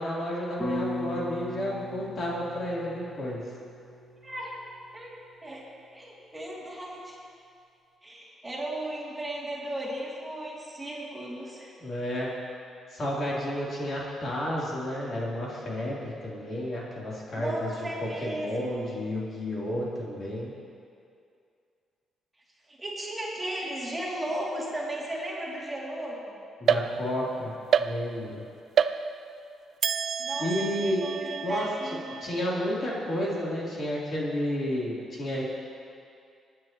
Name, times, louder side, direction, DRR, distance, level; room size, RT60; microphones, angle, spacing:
voice 1, 0.0-3.4 11.8-12.3 12.9-17.7 18.2-20.5 26.6-27.5 27.8-28.4 30.4-31.0 31.4-31.6 32.2-35.4, left 1 dB, 45° left, -6 dB, 3.3 m, -31 dB
sound 1, 0.6-4.9, left 1 dB, 20° left, 1.5 m, -37 dB
voice 2, 4.2-4.6 4.9-5.1 5.4-5.6 5.9-7.2 8.0-11.7 17.4-18.8 22.7-26.4 30.2-32.2, right 1 dB, 15° right, -5 dB, 2.7 m, -35 dB
sound 2, 26.7-27.3 27.7-28.4 28.8-29.4 29.8-33.3, right 7 dB, 60° right, 0.4 m, -29 dB
22.0 x 9.4 x 3.0 m, 2.4 s
cardioid pair, 90°, 0 cm